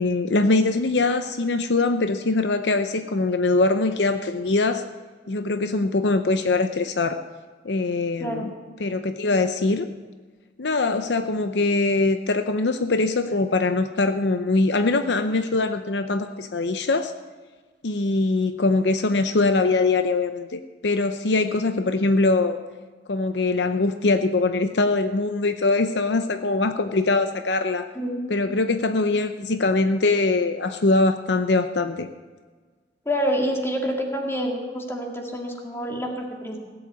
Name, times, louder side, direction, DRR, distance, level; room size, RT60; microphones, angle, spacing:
voice 1, 0.0-4.8 5.3-7.2 7.6-8.5 8.8-9.9 10.6-17.1 17.8-22.6 23.1-27.9 28.3-32.1, left 3 dB, 70° left, 9 dB, 0.7 m, -22 dB
voice 2, 33.1-36.6, equal, 15° left, 1 dB, 2.1 m, -27 dB
17.5 x 8.0 x 8.2 m, 1.4 s
head